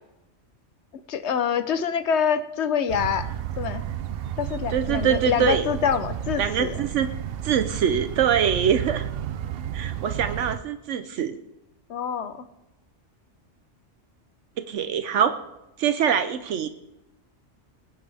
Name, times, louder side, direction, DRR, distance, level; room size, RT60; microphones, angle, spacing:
voice 1, 1.1-3.3 3.6-3.8 4.4-6.7 11.9-12.5, left 7 dB, 70° left, 11 dB, 1.1 m, -25 dB
sound 1, 2.9-10.6, right 10 dB, 60° right, 0.7 m, -32 dB
voice 2, 4.7-5.7 6.4-7.1 7.4-9.1 9.7-11.4 14.6-15.4 15.8-16.7, right 8 dB, 80° right, 9 dB, 1.0 m, -24 dB
19.5 x 9.6 x 3.4 m, 0.97 s
omnidirectional pair, 1.2 m